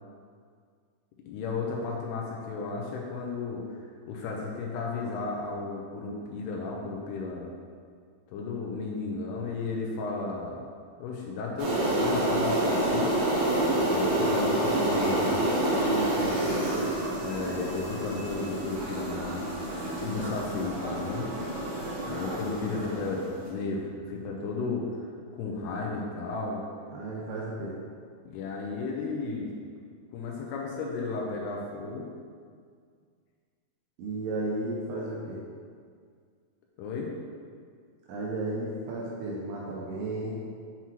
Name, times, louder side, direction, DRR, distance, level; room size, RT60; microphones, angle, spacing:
voice 1, 1.3-3.6 4.1-7.5 8.3-10.6 11.0-13.2 13.8-15.4 17.2-19.5 19.9-21.3 22.1-25.1 25.4-26.6 28.2-29.5 30.1-32.0 36.8-37.1, left 4 dB, 90° left, -1 dB, 2.4 m, -34 dB
sound 1, 11.6-23.4, right 1 dB, 55° right, 2.4 m, -28 dB
voice 2, 14.4-15.5 15.9-16.8 22.7-23.0 26.9-27.8 34.0-35.4 38.1-40.4, right 2 dB, 80° right, -5 dB, 2.4 m, -34 dB
6.9 x 5.9 x 3.1 m, 2.1 s
omnidirectional pair, 5.5 m